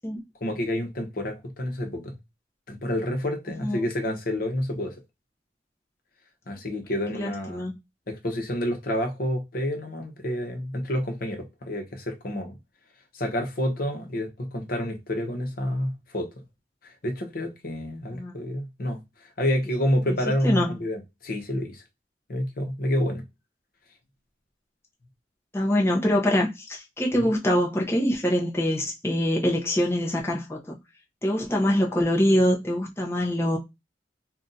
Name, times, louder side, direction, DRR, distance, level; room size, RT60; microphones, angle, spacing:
voice 1, 0.4-2.2 2.7-5.0 6.5-7.7 8.1-12.6 13.1-16.3 17.0-19.0 19.4-21.8 22.3-23.2 27.1-27.3, left 1 dB, 55° left, 0.9 m, -29 dB
voice 2, 3.6-3.9 7.1-7.7 18.1-18.5 20.1-20.2 20.4-20.8 25.5-30.8 31.2-33.6, left 1 dB, 15° left, 0.6 m, -24 dB
2.6 x 2.3 x 3.9 m
head